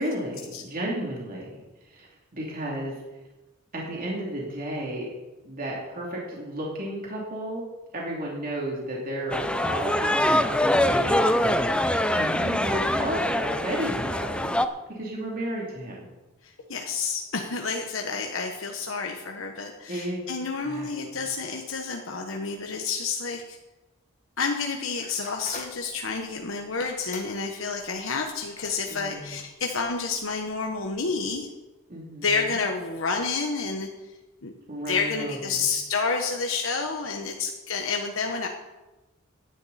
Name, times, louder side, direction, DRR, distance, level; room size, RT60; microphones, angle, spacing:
voice 1, 0.0-1.6 1.9-2.9 3.7-5.1 5.4-7.6 7.9-14.5 14.9-16.1 19.9-20.2 20.6-20.9 28.9-29.4 31.9-32.3 34.7-35.4, right 1 dB, 45° right, -3 dB, 3.0 m, -33 dB
sound 1, 9.3-14.7, left 1 dB, 5° left, 0.5 m, -24 dB
voice 2, 16.4-23.6 24.4-31.5 32.2-34.1 34.4-34.5 34.9-38.5, left 4 dB, 75° left, 2 dB, 1.2 m, -29 dB
sound 2, 25.0-30.9, left 4 dB, 40° left, 1.9 m, -48 dB
16.5 x 10.5 x 4.2 m, 1.1 s
head